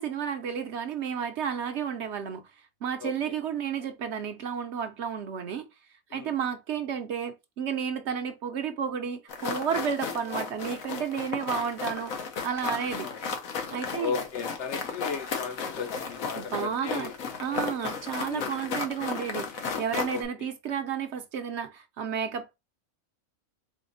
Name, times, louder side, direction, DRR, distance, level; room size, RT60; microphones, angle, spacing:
voice 1, 0.0-2.5 2.8-5.7 6.1-12.1 12.4-13.1 13.7-14.1 16.3-17.1 17.4-22.5, right 7 dB, 60° right, 0.9 m, -32 dB
voice 2, 3.0-3.3 6.1-6.3 12.9-13.2 13.9-17.1 18.3-18.6 20.1-20.2, left 6 dB, 60° left, 0.9 m, -36 dB
sound 1, 9.3-20.2, left 5 dB, 90° left, 1.4 m, -34 dB
4.2 x 3.9 x 2.6 m
omnidirectional pair, 1.4 m